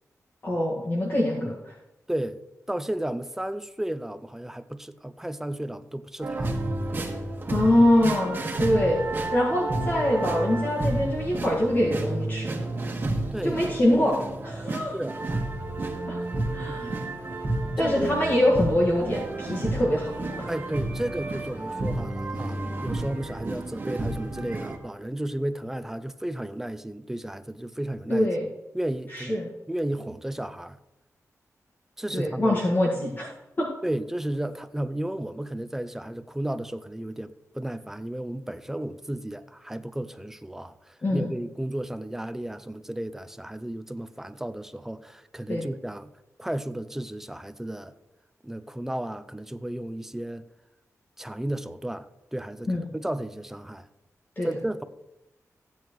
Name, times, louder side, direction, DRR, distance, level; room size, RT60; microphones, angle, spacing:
voice 1, 0.4-1.7 7.5-9.0 9.3-12.6 13.4-14.2 14.4-15.0 16.1-16.2 16.5-17.1 17.8-20.5 28.1-28.5 29.1-29.5 32.1-33.3 33.6-33.7 41.0-41.3 45.5-45.7 52.7-52.9 54.4-54.5, left 1 dB, 35° left, 1.7 m, -24 dB
voice 2, 2.1-2.4 2.7-6.6 13.3-13.6 14.9-15.2 16.6-17.0 17.8-18.2 20.5-28.3 28.7-30.8 32.0-32.6 33.8-46.1 46.4-47.9 48.4-50.5 51.2-53.9 54.4-54.8, right 1 dB, 5° right, 0.5 m, -33 dB
sound 1, 6.2-24.8, right 2 dB, 35° right, 1.6 m, -31 dB
15.0 x 8.8 x 3.1 m
wide cardioid pair, 150°, 6 cm